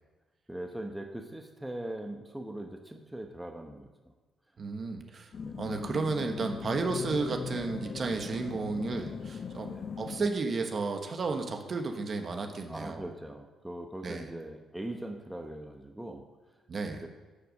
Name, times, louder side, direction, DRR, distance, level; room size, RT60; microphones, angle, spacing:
voice 1, 0.5-3.9 5.4-5.6 9.6-9.8 12.7-16.2 16.9-17.1, right 1 dB, 5° right, 3 dB, 1.0 m, -40 dB
voice 2, 4.6-9.7 10.0-13.0 14.0-14.3 16.7-17.0, right 4 dB, 45° right, 4 dB, 1.4 m, -33 dB
sound 1, 5.3-10.3, left 6 dB, 55° left, 0.6 m, -39 dB
9.5 x 6.7 x 6.5 m, 1.3 s
cardioid pair, 90°, 0 cm